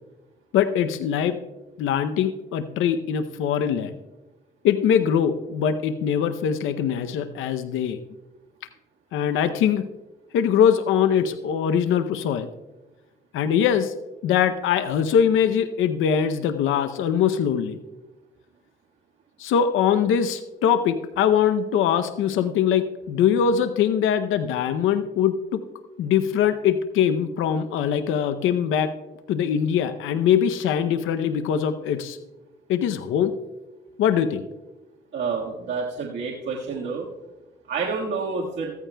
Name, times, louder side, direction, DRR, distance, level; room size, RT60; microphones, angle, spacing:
voice 1, 0.5-1.4 1.8-4.0 4.6-8.0 9.1-9.9 10.3-12.5 13.3-13.9 14.2-17.8 19.4-25.6 26.0-28.9 29.3-32.2 32.7-33.3 34.0-34.4, left 8 dB, 85° left, 10 dB, 0.7 m, -22 dB
voice 2, 35.1-37.0 37.7-38.7, right 4 dB, 65° right, -3 dB, 1.6 m, -28 dB
15.5 x 14.0 x 2.2 m, 1.1 s
cardioid pair, 90°, 20 cm